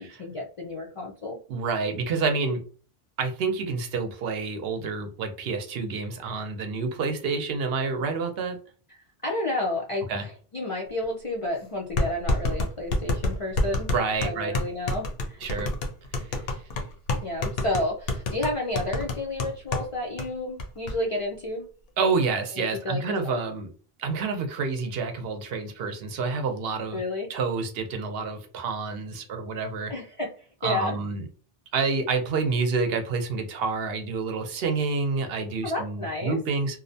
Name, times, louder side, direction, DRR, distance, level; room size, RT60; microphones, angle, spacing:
voice 1, 0.0-1.4 9.2-13.9 14.2-15.4 17.2-21.7 22.5-23.4 26.9-27.3 29.9-30.3 30.6-31.0 35.6-36.4, left 1 dB, 50° left, 0.4 m, -31 dB
voice 2, 1.5-2.6 3.2-8.6 10.1-10.3 13.9-14.5 15.4-15.7 16.2-16.3 22.0-23.7 24.0-27.0 27.3-29.9 30.6-31.3 31.7-36.8, right 4 dB, 70° right, 0.8 m, -28 dB
sound 1, 11.0-11.1 12.0-19.9 20.2-20.3 20.6-20.9, left 2 dB, 70° left, 0.8 m, -27 dB
2.5 x 2.0 x 2.6 m
omnidirectional pair, 1.0 m